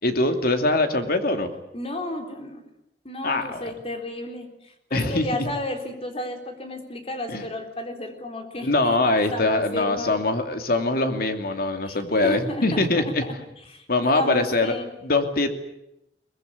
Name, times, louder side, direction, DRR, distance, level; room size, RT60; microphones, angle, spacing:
voice 1, 0.0-1.5 3.2-3.7 4.9-5.3 7.3-7.4 8.6-13.2 13.9-14.7 15.0-15.5, left 2 dB, 60° left, 6 dB, 2.7 m, -23 dB
voice 2, 1.7-2.6 3.0-9.0 9.3-10.1 11.8-13.3 13.7-14.9, left 1 dB, 35° left, 5 dB, 3.9 m, -33 dB
23.0 x 20.0 x 9.8 m, 0.85 s
head